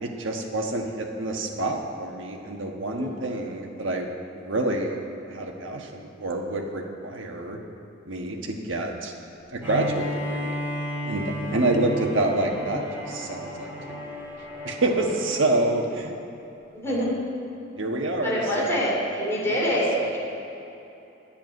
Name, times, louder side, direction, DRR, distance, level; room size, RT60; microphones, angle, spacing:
voice 1, 0.0-5.0 5.3-7.6 8.1-9.1 9.5-10.6 11.0-14.2 14.6-16.1 16.9-17.0 17.8-18.8 19.7-20.1, right 2 dB, 70° right, 1 dB, 1.4 m, -28 dB
Bowed string instrument, 9.6-15.6, equal, 10° right, 2.8 m, -33 dB
voice 2, 16.7-17.1 18.2-20.2, equal, 15° left, -6 dB, 2.9 m, -25 dB
10.5 x 7.1 x 9.3 m, 2.9 s
head